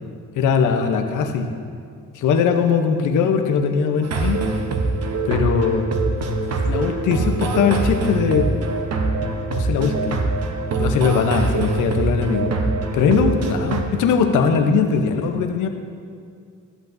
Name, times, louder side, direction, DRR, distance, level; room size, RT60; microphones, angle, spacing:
voice 1, 0.4-1.5 2.1-4.4 5.3-5.9 6.6-8.5 9.5-10.2 10.8-12.5 12.9-15.7, left 6 dB, 85° left, 6 dB, 0.8 m, -20 dB
sound 1, 4.0-13.8, right 3 dB, 55° right, 1.0 m, -23 dB
13.5 x 8.1 x 2.7 m, 2.3 s
cardioid pair, 90°, 30 cm